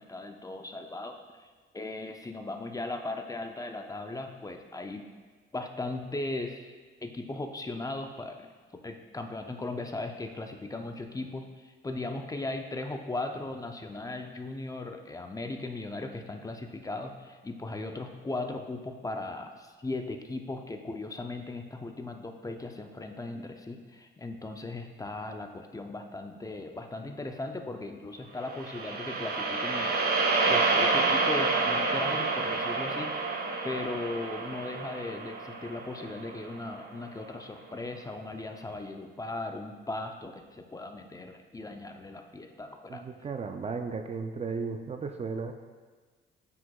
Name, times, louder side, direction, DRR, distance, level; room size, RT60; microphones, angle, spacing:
voice 1, 0.0-5.1 5.5-6.7 7.0-8.4 8.7-30.1 30.5-33.1 33.6-43.1, left 2 dB, 15° left, 4 dB, 0.5 m, -38 dB
sound 1, 28.5-36.8, right 3 dB, 50° right, 0.8 m, -28 dB
voice 2, 42.9-45.5, right 4 dB, 35° right, 6 dB, 0.4 m, -35 dB
9.6 x 4.9 x 2.3 m, 1.4 s
cardioid pair, 90°, 20 cm